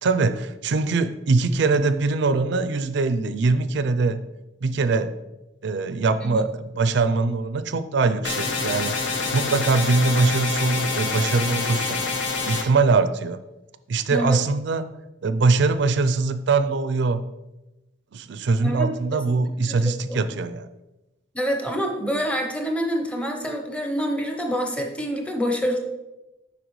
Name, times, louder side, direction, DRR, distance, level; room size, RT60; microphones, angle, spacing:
voice 1, 0.0-4.2 4.6-5.1 5.6-12.0 12.4-13.4 13.9-14.9 15.2-17.2 18.1-20.7, right 3 dB, 65° right, 12 dB, 0.4 m, -22 dB
sound 1, 8.2-12.6, left 4 dB, 70° left, 0.9 m, -26 dB
voice 2, 14.1-14.4 18.6-20.3 21.3-25.8, equal, 5° left, 3 dB, 0.8 m, -27 dB
7.9 x 5.6 x 3.1 m, 1.0 s
head